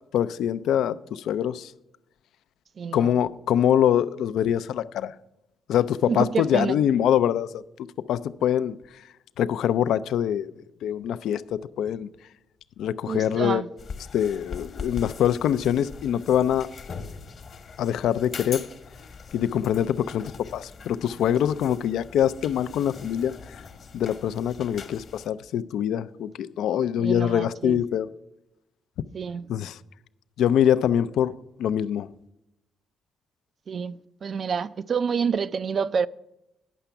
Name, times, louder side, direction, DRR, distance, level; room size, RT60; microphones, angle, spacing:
voice 1, 0.0-1.7 2.9-5.1 5.7-7.6 8.1-8.8 9.4-10.5 10.8-12.1 12.8-13.6 14.1-16.7 17.8-18.7 19.3-23.3 23.9-28.1 29.5-29.8 30.4-31.3 31.6-32.1, left 10 dB, 80° left, 0.3 m, -24 dB
voice 2, 2.8-3.1 6.1-6.8 13.1-13.7 27.0-27.8 29.1-29.5 33.7-36.1, right 6 dB, 50° right, 0.3 m, -28 dB
sound 1, 13.8-25.3, left 5 dB, 50° left, 1.0 m, -41 dB
10.0 x 5.8 x 6.9 m
cardioid pair, 90°, 0 cm